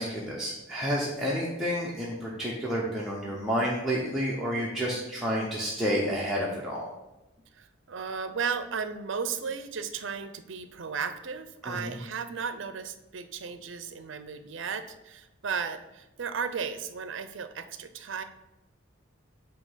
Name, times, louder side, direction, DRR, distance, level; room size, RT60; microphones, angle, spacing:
voice 1, 0.0-6.9 11.6-12.0, equal, ahead, -6 dB, 0.8 m, -30 dB
voice 2, 7.5-18.2, right 6 dB, 65° right, 10 dB, 0.5 m, -35 dB
8.4 x 2.9 x 5.6 m, 0.96 s
head